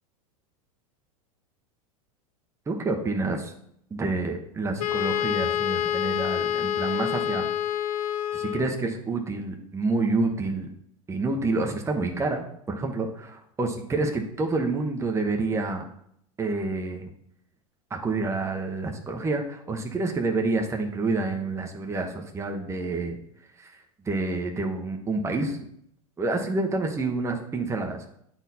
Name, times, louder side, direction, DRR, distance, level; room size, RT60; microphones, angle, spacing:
voice 1, 2.7-3.4 3.9-7.5 8.3-10.7 11.1-15.8 16.4-17.1 17.9-23.2 23.6-23.7 24.0-25.6 26.2-28.1, right 3 dB, 15° right, 2 dB, 1.0 m, -28 dB
Wind instrument woodwind instrument, 4.8-8.8, left 10 dB, 80° left, 0.6 m, -27 dB
8.9 x 4.3 x 4.2 m, 0.70 s
hypercardioid pair, 105°, 19 cm